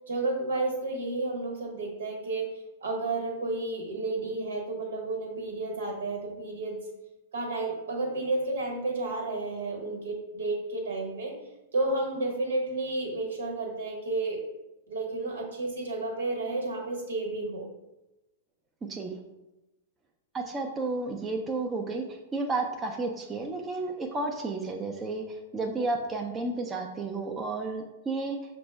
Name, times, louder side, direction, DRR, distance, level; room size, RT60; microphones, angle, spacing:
voice 1, 0.1-2.5 2.8-6.8 7.3-11.3 11.7-14.4 14.9-17.7, right 2 dB, 80° right, 2 dB, 1.2 m, -31 dB
voice 2, 20.3-28.4, right 3 dB, 20° right, 2 dB, 0.4 m, -32 dB
5.8 x 2.1 x 3.4 m, 0.99 s
hypercardioid pair, 115°, 0 cm